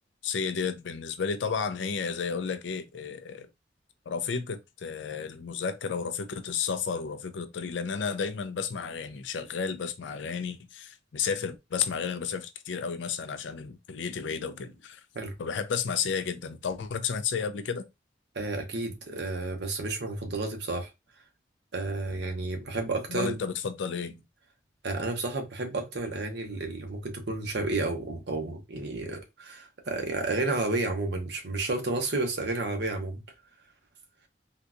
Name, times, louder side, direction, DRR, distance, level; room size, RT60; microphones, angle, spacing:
voice 1, 0.2-3.5 4.1-15.0 15.4-17.9 23.1-24.2, left 6 dB, 75° left, 0.4 m, -32 dB
voice 2, 18.3-20.9 21.7-23.4 24.8-33.2, right 2 dB, 65° right, 0.9 m, -31 dB
3.8 x 2.2 x 2.5 m
head